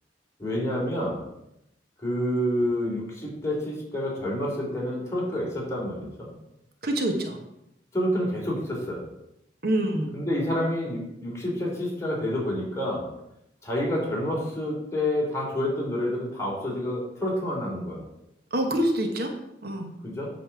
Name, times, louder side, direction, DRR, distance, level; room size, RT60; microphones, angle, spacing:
voice 1, 0.4-1.2 2.0-6.3 7.9-9.0 10.1-13.0 13.6-18.0 20.0-20.3, left 1 dB, 15° left, -4 dB, 3.3 m, -28 dB
voice 2, 6.8-7.4 9.6-10.1 18.5-19.3 19.6-19.9, right 1 dB, 60° right, 4 dB, 1.3 m, -26 dB
9.1 x 4.3 x 7.1 m, 0.83 s
head